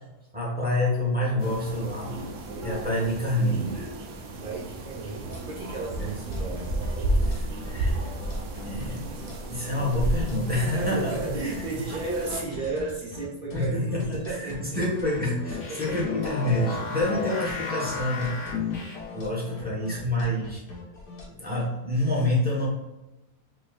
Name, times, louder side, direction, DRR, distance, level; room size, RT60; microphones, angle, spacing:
voice 1, 0.3-2.2 2.6-3.9 6.0-6.1 7.2-8.0 8.6-9.2 9.5-11.6 13.5-18.4 18.8-20.6 21.4-22.7, left 1 dB, 5° right, -6 dB, 1.0 m, -28 dB
sound 1, 1.4-12.4, right 1 dB, 65° right, 0.8 m, -32 dB
voice 2, 4.4-6.7 10.7-15.0 15.7-16.1, right 3 dB, 40° right, -3 dB, 1.3 m, -34 dB
sound 2, 5.3-21.2, left 3 dB, 75° left, 1.6 m, -42 dB
sound 3, 14.8-19.3, left 5 dB, 90° left, 1.4 m, -33 dB
4.8 x 3.0 x 2.4 m, 0.99 s
omnidirectional pair, 1.7 m